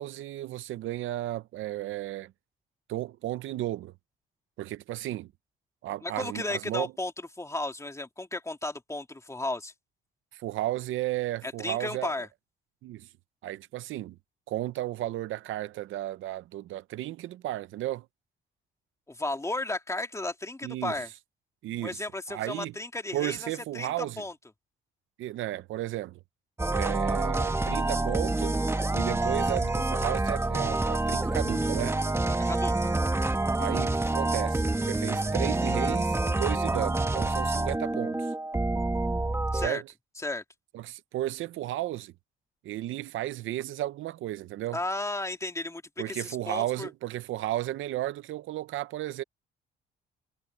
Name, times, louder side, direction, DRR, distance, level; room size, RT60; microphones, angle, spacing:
voice 1, 0.0-2.3 2.9-3.9 4.6-5.3 5.8-6.9 10.3-12.1 12.8-13.1 13.4-14.2 14.5-18.1 20.6-21.0 21.6-22.0 22.3-22.7 23.1-24.2 25.2-26.2 26.7-28.6 28.9-32.0 33.6-38.3 39.5-39.9 40.7-42.1 42.6-44.8 46.0-49.2, right 14 dB, 80° right, 0.7 m, -34 dB
voice 2, 6.0-7.1 7.4-9.7 11.4-12.3 19.1-21.1 21.8-24.3 32.3-32.9 39.5-39.8 40.2-40.4 44.7-46.9, left 2 dB, 15° left, 2.8 m, -34 dB
sound 1, 26.6-39.7, right 2 dB, 15° right, 1.3 m, -27 dB
cardioid pair, 90°, 20 cm